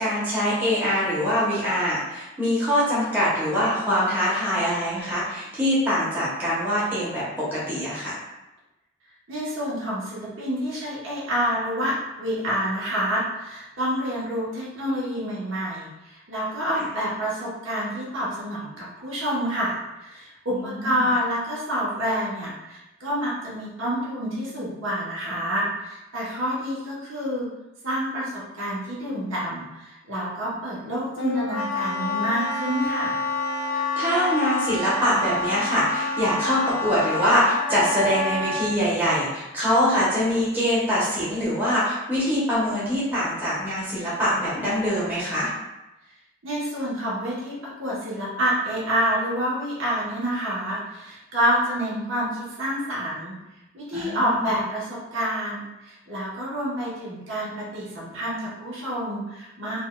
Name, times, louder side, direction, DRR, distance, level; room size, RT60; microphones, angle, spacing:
voice 1, 0.0-8.2 20.5-21.0 33.7-45.5 53.9-54.5, equal, 10° right, -10 dB, 0.9 m, -24 dB
voice 2, 9.3-27.5 27.8-33.2 46.4-53.3 53.7-59.8, equal, 70° right, -7 dB, 1.1 m, -28 dB
Wind instrument woodwind instrument, 31.2-38.7, left 2 dB, 85° left, 0.4 m, -28 dB
4.0 x 2.3 x 2.3 m, 0.98 s
head